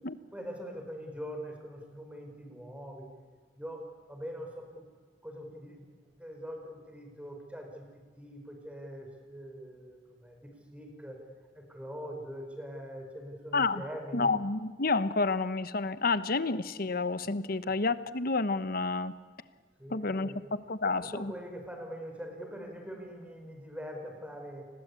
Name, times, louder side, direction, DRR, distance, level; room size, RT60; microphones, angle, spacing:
voice 1, 0.3-3.1 3.6-4.9 5.2-7.9 8.2-11.2 11.5-14.3 17.6-17.7 19.8-20.4 20.8-24.7, equal, 5° right, 3 dB, 5.0 m, -43 dB
voice 2, 14.1-19.1 19.9-20.3 20.7-21.3, left 3 dB, 55° left, 13 dB, 1.1 m, -29 dB
29.0 x 21.0 x 8.5 m, 1.4 s
head